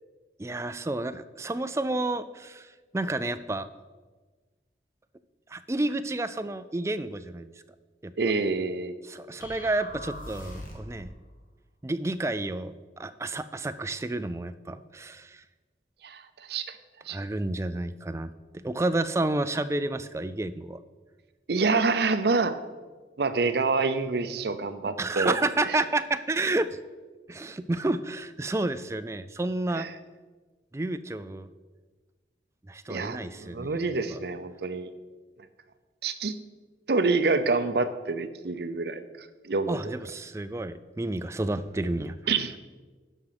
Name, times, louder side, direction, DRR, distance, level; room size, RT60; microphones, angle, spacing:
voice 1, 0.4-3.7 5.5-7.5 8.0-8.1 9.0-11.1 11.8-15.4 17.1-20.8 25.0-26.8 27.3-29.9 30.7-31.5 32.7-33.8 34.1-34.2 39.7-42.2, right 2 dB, 15° right, 11 dB, 0.3 m, -30 dB
voice 2, 8.2-8.9 16.0-16.8 17.1-17.2 21.5-22.6 23.2-25.3 29.7-29.9 32.9-34.9 36.0-36.4 36.9-39.0 39.4-39.8 42.3-42.6, right 4 dB, 60° right, 11 dB, 0.6 m, -27 dB
sound 1, 9.4-11.0, left 1 dB, 45° left, 1.7 m, -41 dB
12.0 x 5.0 x 5.9 m, 1.3 s
head